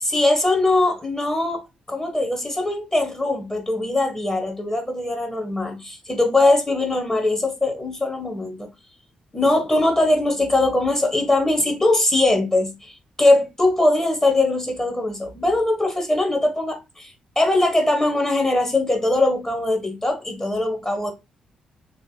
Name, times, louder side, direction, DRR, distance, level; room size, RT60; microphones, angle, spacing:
voice 1, 0.0-1.6 1.9-8.7 9.3-21.1, left 2 dB, 20° left, 1.2 m, -21 dB
3.2 x 2.5 x 2.6 m
hypercardioid pair, 40°, 3 cm